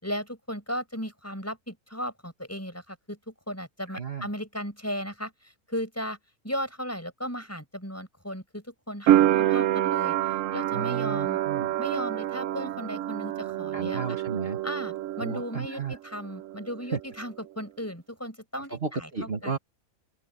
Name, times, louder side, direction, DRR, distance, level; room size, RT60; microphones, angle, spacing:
voice 1, 0.0-6.2 6.4-10.1 10.5-11.4 11.8-14.0 14.6-19.5, equal, 10° left, 7.9 m, -36 dB
voice 2, 3.9-4.3 10.7-11.7 13.7-14.6 15.2-16.0 16.9-17.0 18.7-19.6, right 5 dB, 45° right, 2.0 m, -33 dB
sound 1, 9.1-15.9 16.1-17.0, right 13 dB, 70° right, 0.9 m, -27 dB
open air
omnidirectional pair, 1.5 m